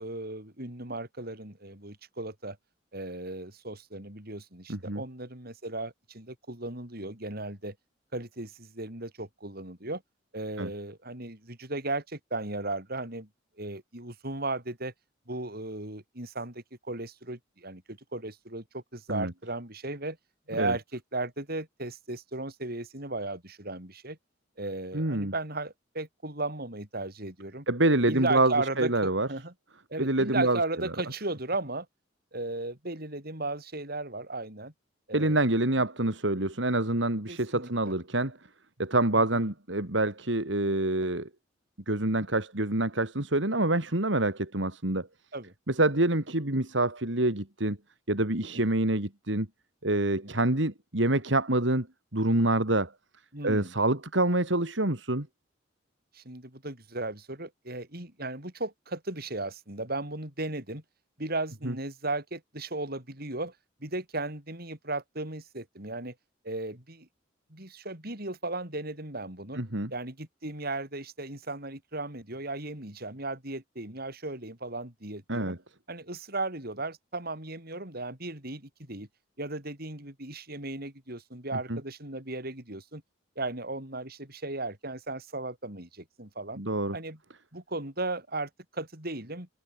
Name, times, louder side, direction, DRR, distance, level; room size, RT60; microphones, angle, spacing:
voice 1, 0.0-2.6 2.9-7.8 8.1-10.0 10.3-13.3 13.6-14.9 15.3-20.2 20.5-24.2 24.6-27.7 28.1-29.5 29.9-31.9 32.3-34.7 35.1-35.4 37.3-37.9 39.2-39.4 45.3-45.5 48.5-48.6 53.3-53.7 56.1-60.8 61.2-63.5 63.8-66.1 66.4-67.1 67.5-69.6 69.9-75.6 75.9-79.1 79.4-83.0 83.4-86.6 86.9-87.2 87.5-89.5, right 2 dB, 55° right, 7.1 m, -36 dB
voice 2, 4.7-5.0 10.6-10.7 19.1-19.3 20.6-20.7 24.9-25.3 27.7-29.3 30.0-30.6 35.1-38.4 38.8-41.3 41.9-45.1 45.7-47.8 48.1-49.5 49.8-51.9 52.1-52.9 53.4-55.3 61.6-61.7 69.5-69.9 75.3-75.6 81.7-81.8 86.6-87.0, right 2 dB, 70° right, 3.2 m, -26 dB
head